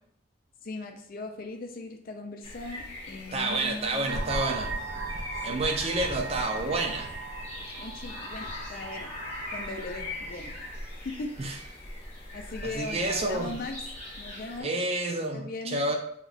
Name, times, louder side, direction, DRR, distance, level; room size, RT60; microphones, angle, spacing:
voice 1, 0.6-4.2 5.4-5.7 7.8-9.1 9.5-10.6 11.0-11.3 12.3-13.8 14.2-14.7 15.3-15.8, left 3 dB, 50° left, 4 dB, 0.5 m, -39 dB
sound 1, 2.4-14.6, left 1 dB, 35° left, 0.9 m, -41 dB
voice 2, 3.3-4.7 5.4-7.1 7.7-7.8 11.4-11.6 12.6-13.5 14.6-16.0, right 2 dB, 30° right, 3 dB, 0.5 m, -29 dB
sound 2, 4.1-10.8, right 3 dB, 85° right, 0.6 m, -38 dB
2.9 x 2.3 x 3.9 m, 0.68 s
head